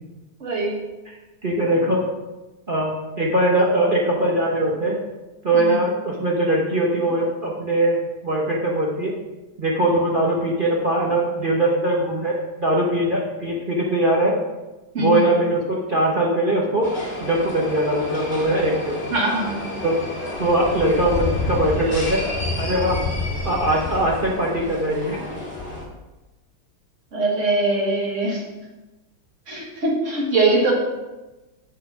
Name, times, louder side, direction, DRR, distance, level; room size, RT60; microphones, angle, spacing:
voice 1, 0.4-0.8 5.5-5.8 14.9-15.3 19.1-19.7 27.1-28.4 29.5-30.7, right 2 dB, 35° right, -2 dB, 1.8 m, -22 dB
voice 2, 1.4-2.0 2.7-5.0 5.4-9.1 9.6-14.3 15.0-16.9 17.2-19.0 19.8-20.0 20.4-22.2 22.6-23.0 23.4-25.2, right 1 dB, 55° right, -3 dB, 0.5 m, -21 dB
sound 1, 16.8-25.8, left 2 dB, 20° left, 1.9 m, -29 dB
7.2 x 4.3 x 5.7 m, 1.1 s
omnidirectional pair, 2.4 m